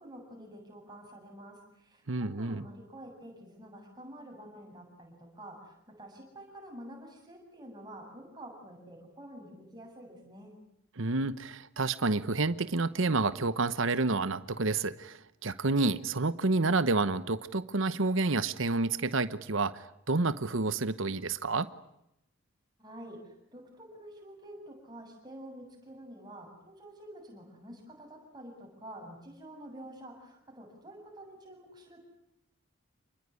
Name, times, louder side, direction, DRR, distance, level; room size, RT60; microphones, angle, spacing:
voice 1, 0.0-10.5 22.8-32.1, right 1 dB, 20° right, 1 dB, 7.8 m, -48 dB
voice 2, 2.1-2.7 11.0-21.7, right 3 dB, 70° right, 14 dB, 1.0 m, -29 dB
28.0 x 21.0 x 9.7 m, 0.84 s
head